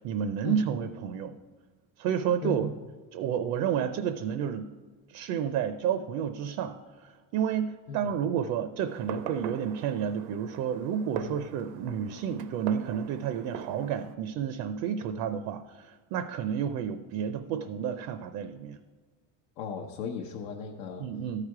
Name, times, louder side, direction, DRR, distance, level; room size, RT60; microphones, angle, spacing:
voice 1, 0.0-1.4 2.0-2.7 3.1-4.7 5.1-18.8 21.0-21.4, right 8 dB, 55° right, 10 dB, 0.5 m, -31 dB
voice 2, 2.4-2.8 7.9-8.2 11.2-11.5 19.6-21.1, left 6 dB, 75° left, 0 dB, 0.9 m, -37 dB
Fireworks, 8.9-14.1, right 8 dB, 90° right, 0.8 m, -41 dB
13.5 x 4.9 x 4.7 m, 1.4 s
cardioid pair, 165°, 38 cm